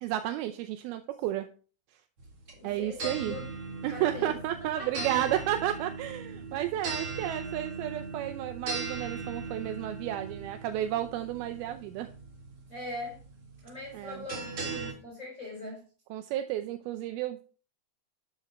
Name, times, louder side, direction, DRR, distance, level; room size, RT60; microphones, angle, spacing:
voice 1, 0.0-1.5 2.6-3.4 3.8-12.1 13.9-14.3 16.1-17.4, right 12 dB, 80° right, 8 dB, 2.6 m, -32 dB
sound 1, 2.2-14.9, right 4 dB, 40° right, 2.4 m, -39 dB
voice 2, 2.6-3.5 3.9-4.4 4.8-5.1 6.5-6.7 12.7-13.2 13.6-15.9, left 1 dB, 20° left, -2 dB, 4.4 m, -41 dB
12.0 x 7.4 x 4.3 m, 0.38 s
omnidirectional pair, 4.4 m